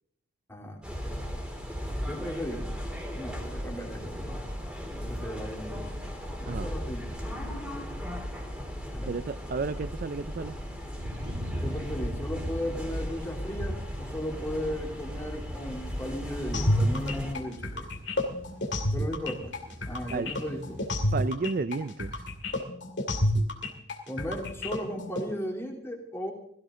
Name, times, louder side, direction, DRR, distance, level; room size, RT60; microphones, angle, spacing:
sound 1, 0.8-17.3, equal, 5° right, 3.2 m, -36 dB
voice 1, 2.1-2.6 3.1-4.4 4.9-5.9 6.4-7.1 8.9-9.2 11.6-17.9 18.9-19.5 19.8-20.8 24.1-26.3, equal, 15° left, 0 dB, 3.3 m, -36 dB
voice 2, 9.1-10.6 20.1-20.3 21.1-22.1, right 4 dB, 45° right, 14 dB, 0.4 m, -32 dB
sound 2, 11.0-21.2, equal, 80° right, 3.0 m, -41 dB
sound 3, 16.5-25.2, left 1 dB, 60° left, 2.4 m, -29 dB
16.5 x 15.0 x 3.7 m, 0.73 s
head